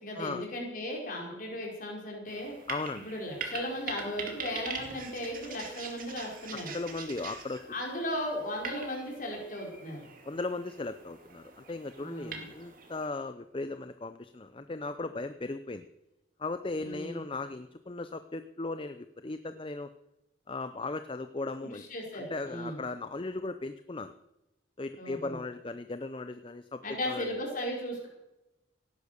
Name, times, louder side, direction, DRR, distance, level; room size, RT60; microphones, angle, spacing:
voice 1, 0.0-2.5 2.9-6.7 7.7-10.0 12.0-12.4 16.8-17.2 21.6-22.8 25.0-25.4 26.8-28.1, left 1 dB, 45° left, 0 dB, 4.9 m, -36 dB
sound 1, 2.3-13.1, right 5 dB, 45° right, 2.5 m, -43 dB
voice 2, 2.7-3.1 6.7-7.7 10.3-15.9 16.4-19.9 20.5-21.9 22.1-24.1 24.8-27.3, left 3 dB, 25° left, 10 dB, 0.5 m, -37 dB
17.5 x 10.5 x 6.8 m, 0.96 s
head